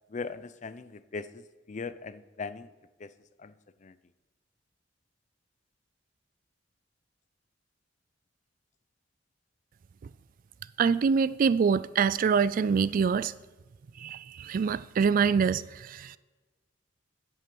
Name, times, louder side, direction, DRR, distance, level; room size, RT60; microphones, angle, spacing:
voice 1, 0.1-2.7 3.0-3.1 3.4-3.5 3.8-4.0, left 4 dB, 40° left, 0.5 m, -39 dB
voice 2, 10.8-13.3 14.0-16.2, right 6 dB, 45° right, 0.3 m, -25 dB
8.4 x 7.5 x 7.7 m
head